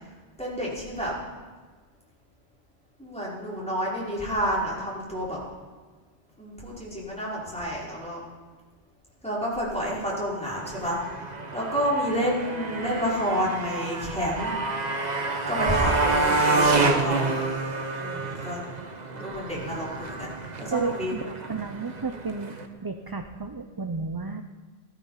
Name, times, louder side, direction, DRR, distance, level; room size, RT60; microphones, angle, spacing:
voice 1, 0.4-1.1 3.0-5.4 6.4-8.2 9.2-11.0 11.5-14.5 15.5-17.3 18.0-18.6 19.1-21.1, equal, 5° left, -7 dB, 5.2 m, -29 dB
Motorcycle, 10.5-22.7, right 3 dB, 40° right, 1.3 m, -28 dB
voice 2, 20.7-21.2 21.5-22.6 22.8-24.4, right 4 dB, 25° right, 6 dB, 0.6 m, -32 dB
17.0 x 13.5 x 5.8 m, 1.4 s
omnidirectional pair, 1.1 m